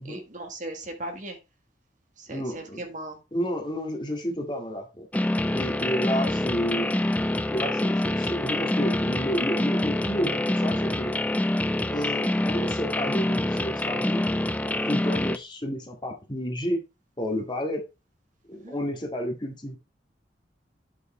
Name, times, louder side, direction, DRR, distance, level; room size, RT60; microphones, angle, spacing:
voice 1, 0.0-1.4 2.2-3.2 18.6-18.8, right 1 dB, 45° right, 1.6 m, -38 dB
voice 2, 2.3-2.8 3.3-5.1 5.5-6.9 7.5-11.1 11.9-14.2 14.6-16.8 17.2-17.8 18.5-19.8, equal, 25° left, 2.1 m, -31 dB
sound 1, 5.1-15.4, left 1 dB, 10° left, 0.4 m, -26 dB
8.5 x 4.7 x 4.4 m
head